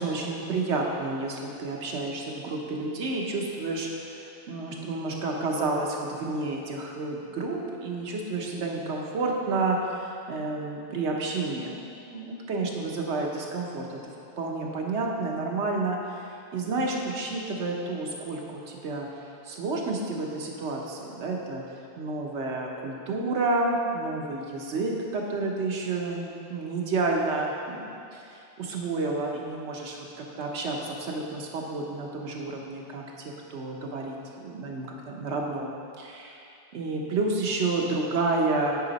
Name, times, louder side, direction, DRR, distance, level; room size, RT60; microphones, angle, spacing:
voice 1, 0.0-11.8 12.1-14.0 14.4-19.1 19.4-21.6 22.0-36.4 36.7-38.8, right 3 dB, 75° right, 0 dB, 1.2 m, -30 dB
9.7 x 5.0 x 4.0 m, 2.5 s
omnidirectional pair, 1.2 m